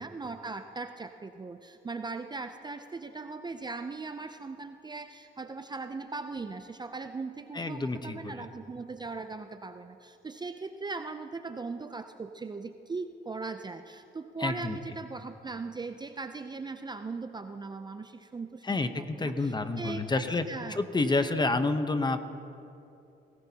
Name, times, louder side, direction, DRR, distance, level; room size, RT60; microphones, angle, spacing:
voice 1, 0.0-18.6 19.0-20.8 21.1-21.2, right 3 dB, 20° right, 8 dB, 0.5 m, -39 dB
voice 2, 7.5-8.5 14.4-14.8 18.6-20.4 20.7-22.2, left 3 dB, 20° left, 9 dB, 0.8 m, -29 dB
19.5 x 17.5 x 2.8 m, 2.7 s
cardioid pair, 90°, 20 cm